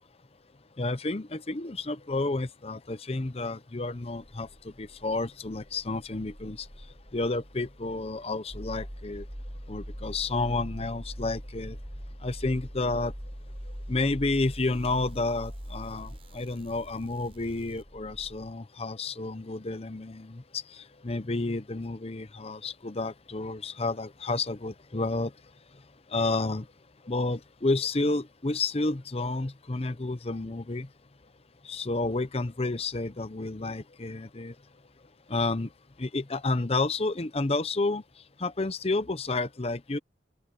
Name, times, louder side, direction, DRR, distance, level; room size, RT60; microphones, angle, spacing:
voice 1, 0.8-6.7 7.1-9.2 9.7-11.8 12.2-13.1 13.9-20.6 21.0-25.3 26.1-26.6 27.1-30.9 31.7-34.5 35.3-35.7 36.0-38.0 38.4-40.0, left 2 dB, 35° left, 0.8 m, -30 dB
sound 1, 3.9-18.5, equal, 35° right, 7.2 m, -43 dB
open air
head